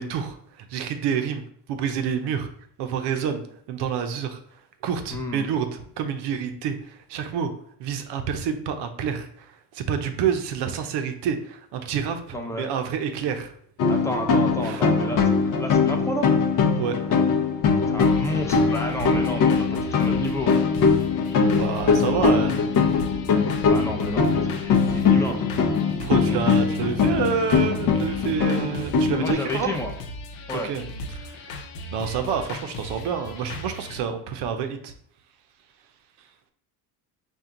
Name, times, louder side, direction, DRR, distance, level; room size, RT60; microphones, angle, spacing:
voice 1, 0.0-2.5 2.8-4.4 4.8-7.5 7.8-9.5 9.7-13.5 14.6-14.8 16.7-17.0 21.5-22.6 26.0-29.7 30.6-30.8 31.2-31.4 31.9-34.9, right 7 dB, 70° right, 7 dB, 0.7 m, -28 dB
voice 2, 5.1-5.5 12.3-12.7 13.9-16.3 17.7-20.5 22.2-22.4 23.6-25.4 29.2-29.9 30.5-30.7, left 1 dB, 5° left, 2 dB, 0.7 m, -31 dB
sound 1, 13.8-29.3, left 5 dB, 50° left, 0.7 m, -21 dB
sound 2, 18.0-34.0, left 2 dB, 85° left, 0.7 m, -37 dB
4.4 x 2.4 x 3.7 m, 0.63 s
supercardioid pair, 95°, 43 cm